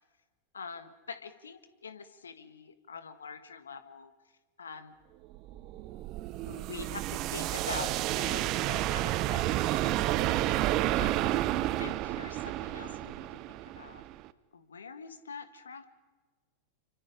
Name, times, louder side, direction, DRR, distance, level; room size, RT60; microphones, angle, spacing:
voice 1, 0.5-4.1 4.6-4.9 6.4-7.9 8.2-10.4 11.0-11.4 11.8-14.0 14.5-15.8, left 5 dB, 70° left, 11 dB, 1.7 m, -45 dB
sound 1, 5.3-14.3, right 15 dB, 40° right, 0.8 m, -31 dB
29.0 x 25.0 x 5.1 m, 1.3 s
figure-of-eight pair, 90°, 0 cm